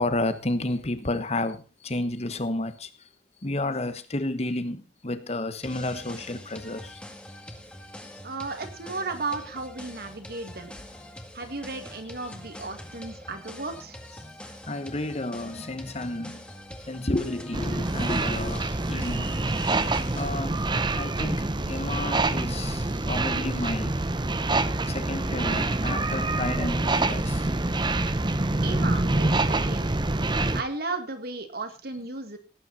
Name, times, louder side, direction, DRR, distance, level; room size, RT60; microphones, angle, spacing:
voice 1, 0.0-2.9 3.4-7.0 14.7-16.4 16.9-19.3 20.1-24.0 24.9-27.5, left 2 dB, 35° left, 1.1 m, -31 dB
sound 1, 5.6-20.4, left 1 dB, 5° left, 1.8 m, -44 dB
voice 2, 8.2-10.7 11.3-14.0 28.6-29.9 30.5-32.4, right 3 dB, 55° right, 2.1 m, -34 dB
sound 2, 17.5-30.6, right 2 dB, 25° right, 0.8 m, -26 dB
17.5 x 9.3 x 4.1 m
head